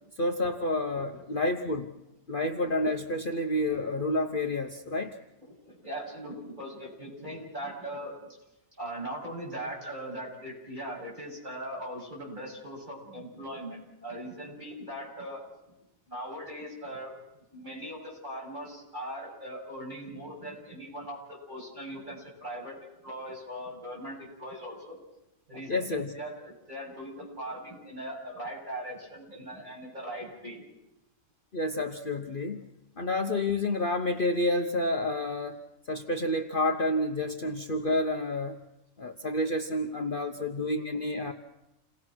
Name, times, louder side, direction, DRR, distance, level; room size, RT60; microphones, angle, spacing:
voice 1, 0.2-1.9 2.3-5.2 25.7-26.1 31.5-32.6 33.0-35.6 35.9-38.6 39.0-41.3, left 1 dB, 40° left, 4 dB, 1.1 m, -29 dB
voice 2, 5.4-8.1 8.8-15.4 16.1-17.1 17.5-22.8 23.0-25.0 25.5-30.6, right 1 dB, 35° right, -4 dB, 8.0 m, -40 dB
29.5 x 18.5 x 6.2 m, 0.92 s
omnidirectional pair, 1.4 m